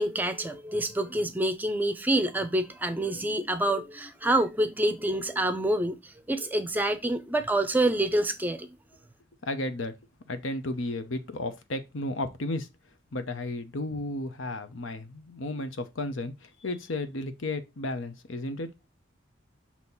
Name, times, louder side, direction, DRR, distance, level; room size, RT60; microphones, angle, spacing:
voice 1, 0.0-6.0 6.3-8.7, right 1 dB, 10° right, 0.5 m, -27 dB
voice 2, 9.4-9.9 10.3-12.7 13.1-18.7, left 2 dB, 80° left, 0.9 m, -33 dB
6.3 x 2.9 x 5.4 m
head